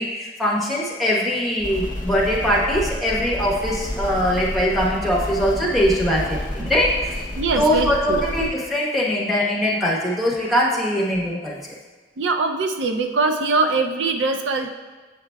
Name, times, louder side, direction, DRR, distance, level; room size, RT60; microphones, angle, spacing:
voice 1, 0.0-7.1 7.6-11.6, equal, ahead, -5 dB, 1.0 m, -21 dB
sound 1, 1.6-8.5, left 1 dB, 20° right, 1.8 m, -30 dB
voice 2, 7.4-8.3 12.2-14.7, right 3 dB, 85° right, 5 dB, 0.5 m, -22 dB
8.2 x 5.7 x 2.3 m, 1.4 s
head